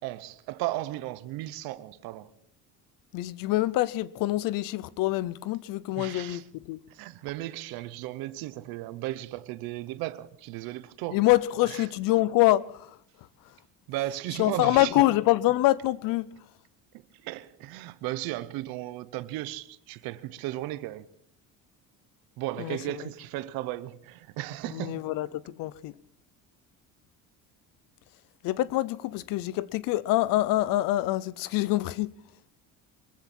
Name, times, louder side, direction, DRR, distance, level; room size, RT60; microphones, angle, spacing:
voice 1, 0.0-2.3 6.0-6.4 6.9-11.2 11.6-11.8 13.9-14.9 16.9-21.1 22.4-25.1, right 16 dB, 85° right, 1.0 m, -35 dB
voice 2, 3.1-6.8 11.1-13.0 14.4-16.3 22.6-22.8 24.7-25.9 28.4-32.1, left 16 dB, 70° left, 0.7 m, -25 dB
23.0 x 14.5 x 4.4 m
cardioid pair, 135°, 35 cm